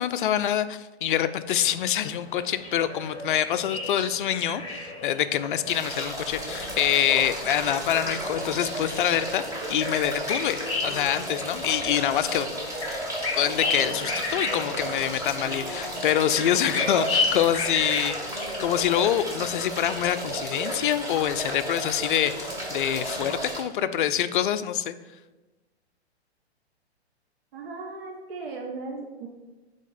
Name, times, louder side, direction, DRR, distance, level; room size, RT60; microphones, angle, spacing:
voice 1, 0.0-12.5 13.4-25.0, left 10 dB, 50° left, 11 dB, 0.4 m, -26 dB
sound 1, 1.5-20.1, left 3 dB, 15° left, 1.5 m, -34 dB
sound 2, 5.7-23.6, right 1 dB, 10° right, 1.1 m, -33 dB
voice 2, 27.5-29.3, right 3 dB, 60° right, 0 dB, 0.9 m, -37 dB
8.1 x 3.5 x 4.1 m, 1.1 s
figure-of-eight pair, 120°, 33 cm